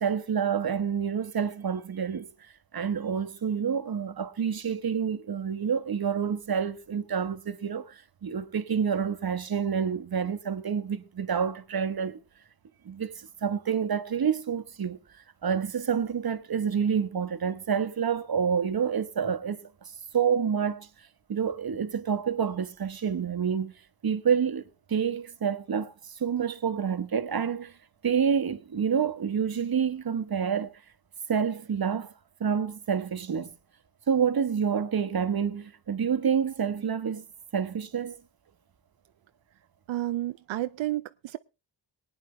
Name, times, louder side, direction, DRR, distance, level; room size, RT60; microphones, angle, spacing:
voice 1, 0.0-2.3 2.7-12.2 12.8-15.0 15.4-19.6 20.1-20.9 21.3-23.7 24.0-25.9 26.2-27.7 28.0-30.7 31.3-32.1 32.4-33.5 34.1-37.2 37.5-38.2, right 7 dB, 50° right, 1.3 m, -28 dB
voice 2, 39.9-41.4, right 14 dB, 90° right, 0.5 m, -31 dB
19.5 x 9.4 x 3.3 m
cardioid pair, 60°, 45 cm